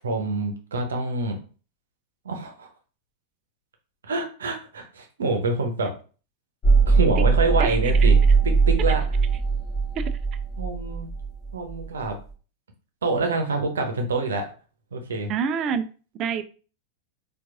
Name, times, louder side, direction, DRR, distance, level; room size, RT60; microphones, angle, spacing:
voice 1, 0.0-1.4 2.2-2.7 4.0-5.9 6.9-8.2 8.4-9.0 10.6-11.1 11.5-12.2 13.0-14.5 14.9-15.3, right 3 dB, 65° right, 0.8 m, -26 dB
sound 1, 6.6-12.1, right 4 dB, 25° left, 1.0 m, -20 dB
voice 2, 7.6-8.1 10.0-10.1 15.3-15.9 16.1-16.4, right 7 dB, 35° right, 0.4 m, -27 dB
4.5 x 2.4 x 2.5 m
figure-of-eight pair, 90°, 0 cm